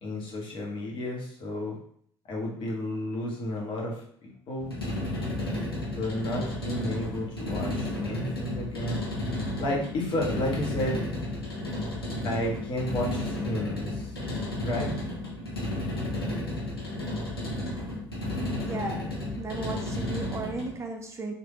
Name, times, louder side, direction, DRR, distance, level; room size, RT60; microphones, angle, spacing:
voice 1, 0.0-1.8 2.3-4.7 6.0-9.0 9.6-11.0 12.2-14.1 14.6-14.9, left 1 dB, 45° left, -2 dB, 1.0 m, -32 dB
sound 1, 4.6-20.8, left 1 dB, 85° left, 0.7 m, -32 dB
voice 2, 18.7-19.1 19.4-21.3, right 3 dB, 25° right, 3 dB, 0.4 m, -35 dB
3.2 x 2.2 x 2.9 m, 0.62 s
figure-of-eight pair, 60°, 12 cm